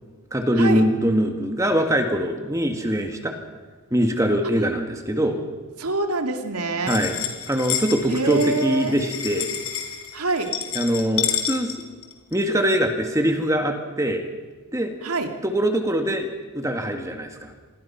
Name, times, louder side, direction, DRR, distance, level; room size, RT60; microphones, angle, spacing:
voice 1, 0.3-3.3 3.9-5.4 6.9-7.2 7.5-9.5 10.7-11.7 12.3-14.2 14.7-14.9 15.4-16.3 16.5-17.5, equal, 15° right, 5 dB, 1.8 m, -22 dB
voice 2, 5.8-7.0 8.1-9.0 10.1-10.5 15.0-15.3, right 3 dB, 90° right, 5 dB, 2.5 m, -25 dB
sound 1, 6.9-12.4, left 10 dB, 70° left, 3.9 m, -29 dB
27.5 x 20.5 x 5.8 m, 1.4 s
head